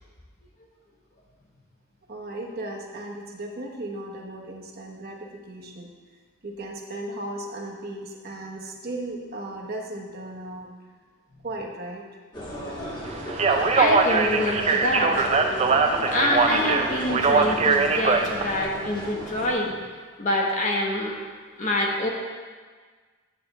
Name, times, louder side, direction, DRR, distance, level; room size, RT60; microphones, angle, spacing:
voice 1, 2.1-5.9 6.4-10.7 11.4-12.2, right 1 dB, 45° right, -1 dB, 0.9 m, -36 dB
sound 1, 12.3-19.5, equal, 20° left, 1.4 m, -35 dB
Speech, 13.3-18.6, right 4 dB, 30° right, 0.4 m, -22 dB
voice 2, 13.7-15.7 16.1-19.7 20.2-21.2 21.6-22.1, left 1 dB, 35° left, -1 dB, 1.1 m, -26 dB
10.0 x 3.4 x 7.0 m, 1.5 s
head